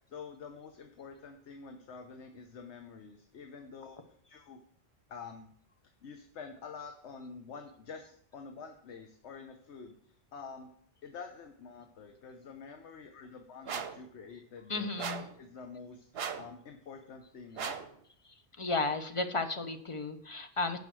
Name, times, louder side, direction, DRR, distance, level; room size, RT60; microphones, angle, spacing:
voice 1, 0.1-4.6 5.1-5.5 6.0-10.7 11.0-15.1 15.4-17.8, left 5 dB, 85° left, 5 dB, 1.1 m, -48 dB
sound 1, 13.7-14.0 15.0-15.4 16.1-16.5 17.6-17.9, right 7 dB, 65° right, 1.0 m, -38 dB
voice 2, 14.7-15.2 18.6-20.8, left 3 dB, 35° left, 7 dB, 0.7 m, -33 dB
9.2 x 5.4 x 6.1 m, 0.64 s
omnidirectional pair, 1.1 m